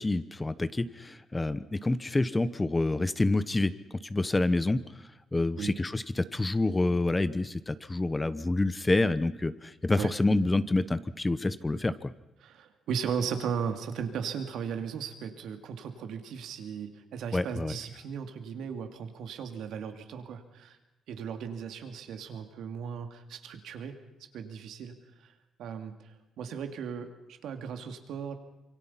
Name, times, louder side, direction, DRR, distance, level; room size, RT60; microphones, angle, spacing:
voice 1, 0.0-4.8 5.3-12.1 17.3-17.8, left 2 dB, 20° left, 14 dB, 1.0 m, -28 dB
voice 2, 12.4-20.8 21.1-23.9 24.3-25.3 25.6-28.3, right 7 dB, 80° right, 6 dB, 2.6 m, -37 dB
26.5 x 24.0 x 5.8 m, 1.0 s
cardioid pair, 90°, 0 cm